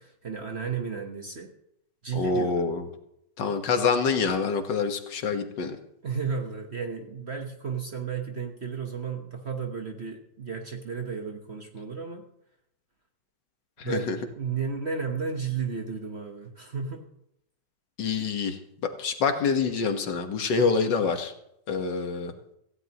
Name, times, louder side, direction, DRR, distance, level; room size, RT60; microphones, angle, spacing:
voice 1, 0.0-1.5 2.0-2.6 6.0-12.3 13.8-14.0 14.4-17.0 20.6-20.7, right 5 dB, 40° right, 3 dB, 1.3 m, -33 dB
voice 2, 2.1-2.9 3.4-5.8 13.8-14.2 18.0-18.6 19.0-21.3 21.7-22.3, left 5 dB, 75° left, 6 dB, 2.0 m, -26 dB
17.5 x 15.5 x 3.0 m, 0.78 s
omnidirectional pair, 2.0 m